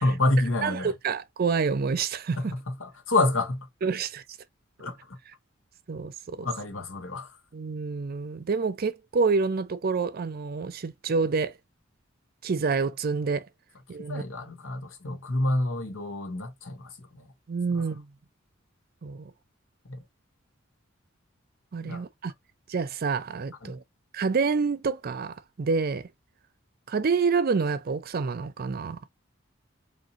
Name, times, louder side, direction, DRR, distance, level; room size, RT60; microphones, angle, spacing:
voice 1, 0.0-0.9 2.5-3.7 4.8-5.2 6.4-7.3 14.1-17.3 17.7-17.8 19.9-20.0 21.8-22.0 23.6-23.7, left 2 dB, 90° left, 1.5 m, -28 dB
voice 2, 0.6-2.4 3.8-4.2 5.9-6.5 7.5-11.5 12.4-13.4 13.9-14.2 17.5-18.1 19.0-19.3 21.7-22.3 22.7-23.8 24.1-26.1 26.9-29.0, right 4 dB, 50° right, 0.5 m, -28 dB
4.9 x 2.7 x 2.8 m
head